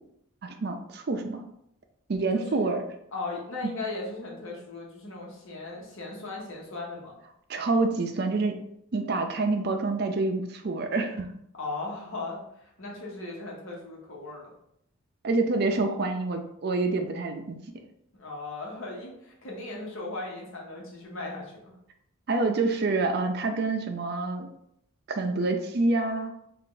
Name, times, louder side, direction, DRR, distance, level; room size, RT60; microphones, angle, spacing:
voice 1, 0.4-1.4 2.1-2.8 3.6-3.7 7.5-8.6 8.9-11.3 15.2-17.6 22.3-24.5 25.1-26.3, right 3 dB, 50° right, 5 dB, 0.4 m, -27 dB
voice 2, 2.3-2.6 3.1-7.2 11.6-14.5 18.1-21.7, left 2 dB, 70° left, -2 dB, 1.1 m, -37 dB
3.7 x 2.5 x 3.8 m, 0.75 s
head